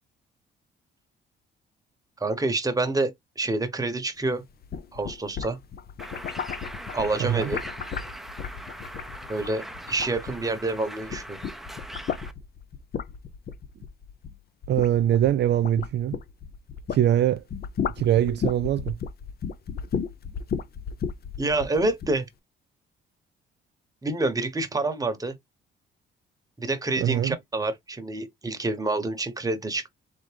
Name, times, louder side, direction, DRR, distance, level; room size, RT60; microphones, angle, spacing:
voice 1, 2.2-4.4 4.9-5.6 6.9-7.6 9.3-11.4 21.4-22.3 24.0-25.3 26.6-29.9, right 2 dB, 20° right, 1.1 m, -27 dB
sound 1, 4.5-10.7 11.0-17.1 17.4-22.2, left 7 dB, 50° left, 0.7 m, -34 dB
Bird, 6.0-12.3, right 1 dB, ahead, 0.7 m, -41 dB
voice 2, 7.2-7.5 14.7-16.2 16.9-17.4 18.0-19.0 27.0-27.4, right 11 dB, 60° right, 0.4 m, -23 dB
3.8 x 3.6 x 3.4 m
cardioid pair, 90°, 20 cm